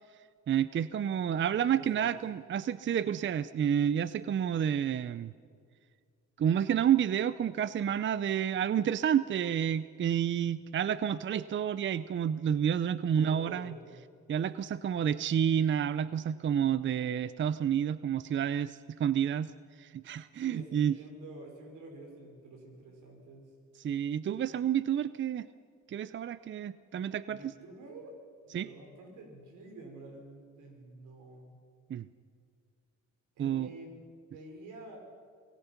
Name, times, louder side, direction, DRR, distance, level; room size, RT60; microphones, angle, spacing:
voice 1, 0.5-5.3 6.4-13.7 14.3-19.5 19.8-21.0 23.8-25.5 25.9-27.5 28.5-28.7 31.9-32.1 33.4-33.7, right 9 dB, 40° right, 16 dB, 0.5 m, -29 dB
voice 2, 1.5-2.1 13.1-14.0 20.4-23.5 27.3-28.1 28.4-31.5 33.4-34.0 34.3-35.0, right 2 dB, 85° right, 2 dB, 5.3 m, -49 dB
25.0 x 18.5 x 5.9 m, 2.1 s
cardioid pair, 90°, 30 cm